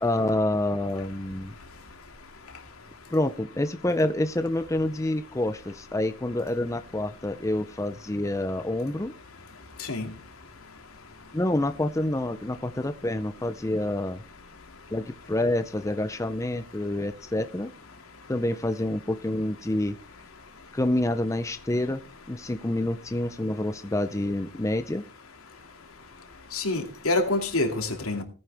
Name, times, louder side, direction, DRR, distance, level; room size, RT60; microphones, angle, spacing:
voice 1, 0.0-1.5 3.1-9.1 11.3-14.2 14.9-17.7 18.3-20.0 20.7-22.0 22.3-25.0, left 1 dB, 15° left, 9 dB, 0.5 m, -27 dB
voice 2, 26.5-28.2, left 2 dB, 85° left, 4 dB, 2.6 m, -26 dB
17.5 x 9.5 x 3.5 m, 0.37 s
head